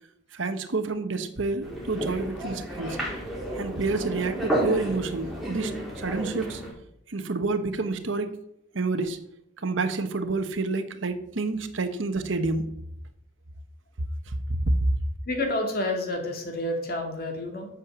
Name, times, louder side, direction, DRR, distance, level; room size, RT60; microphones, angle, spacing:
voice 1, 0.3-3.0 3.5-6.6 7.1-8.4 8.7-9.2 9.6-12.7 14.3-14.7, right 3 dB, 75° right, 1.0 m, -29 dB
sound 1, 1.6-6.7, right 1 dB, ahead, 3.1 m, -31 dB
voice 2, 15.3-17.7, left 1 dB, 50° left, 2.4 m, -29 dB
8.4 x 6.7 x 7.2 m
head